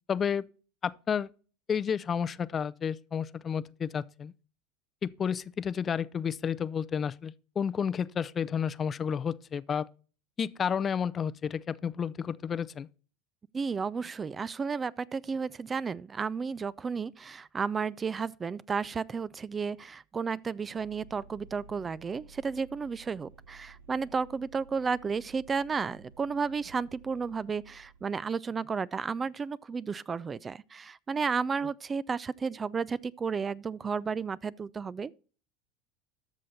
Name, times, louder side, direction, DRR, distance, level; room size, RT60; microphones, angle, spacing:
voice 1, 0.1-0.4 0.8-1.3 1.7-4.3 5.0-9.9 10.4-12.9, left 7 dB, 30° left, 0.5 m, -31 dB
voice 2, 13.5-35.2, right 5 dB, 25° right, 0.4 m, -33 dB
Vehicle, 20.8-28.1, right 4 dB, 80° right, 0.9 m, -55 dB
13.0 x 6.3 x 4.0 m
hypercardioid pair, 85°, 0 cm